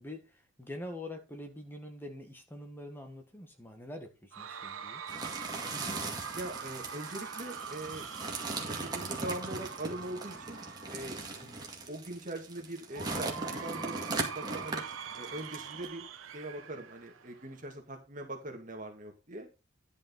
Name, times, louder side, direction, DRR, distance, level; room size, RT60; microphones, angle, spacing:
voice 1, 0.0-5.0 11.4-11.6, left 1 dB, 10° left, 1.7 m, -45 dB
Cheering / Crowd, 4.3-11.6 12.9-17.6, right 6 dB, 80° right, 1.1 m, -44 dB
sound 1, 5.1-15.9, right 3 dB, 20° right, 2.0 m, -39 dB
voice 2, 6.3-8.1 8.6-10.6 10.9-11.2 11.9-14.8 15.2-16.0 16.3-19.5, right 1 dB, 40° right, 2.0 m, -42 dB
11.0 x 5.2 x 5.3 m
head